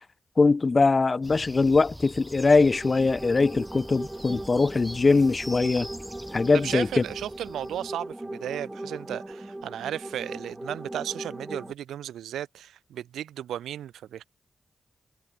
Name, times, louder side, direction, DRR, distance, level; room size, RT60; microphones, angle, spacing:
voice 1, 0.4-5.9 6.3-7.0, left 3 dB, 45° left, 0.5 m, -22 dB
sound 1, 1.2-7.9, equal, ahead, 5.3 m, -43 dB
sound 2, 2.3-11.7, right 1 dB, 20° right, 1.2 m, -39 dB
voice 2, 6.5-14.2, right 11 dB, 85° right, 0.6 m, -35 dB
supercardioid pair, 45°, 0 cm